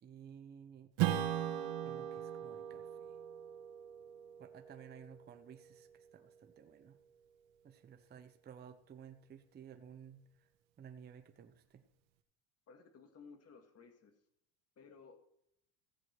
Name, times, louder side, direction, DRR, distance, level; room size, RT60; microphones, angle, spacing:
voice 1, 0.0-0.9 1.8-3.2 4.4-7.0 7.6-10.5 10.8-11.8, right 8 dB, 20° right, 7 dB, 0.7 m, -55 dB
Strum, 1.0-5.9, right 11 dB, 65° right, 1.3 m, -39 dB
voice 2, 12.7-14.1 14.8-15.2, left 5 dB, 30° left, 5 dB, 1.9 m, -57 dB
15.5 x 8.3 x 4.6 m, 0.74 s
cardioid pair, 155°, 48 cm